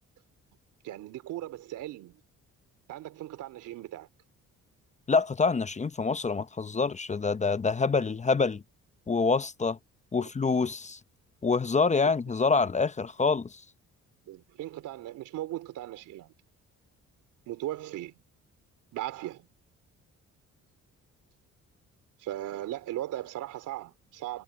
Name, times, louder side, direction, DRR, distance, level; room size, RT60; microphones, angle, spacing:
voice 1, 0.8-2.2 2.9-4.1 10.2-10.3 12.0-12.1 14.3-16.3 17.5-18.2 18.9-19.5 22.2-24.4, right 14 dB, 90° right, 3.5 m, -38 dB
voice 2, 5.1-8.6 9.1-9.8 10.1-11.0 11.4-13.6, left 4 dB, 25° left, 0.7 m, -26 dB
cardioid pair, 90°, 30 cm